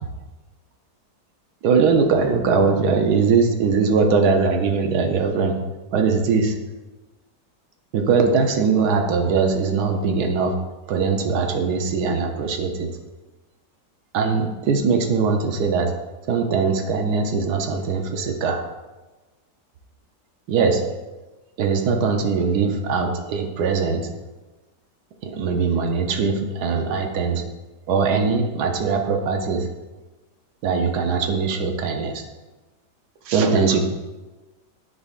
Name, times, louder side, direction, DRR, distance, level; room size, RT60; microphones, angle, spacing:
voice 1, 1.6-5.6 5.9-6.5 7.9-10.5 10.9-12.9 14.1-15.9 16.3-18.6 20.5-20.8 21.6-24.1 25.2-27.4 27.9-29.7 30.6-32.2 33.2-33.8, right 5 dB, 70° right, 4 dB, 1.2 m, -21 dB
9.8 x 4.0 x 2.4 m, 1.2 s
omnidirectional pair, 1.9 m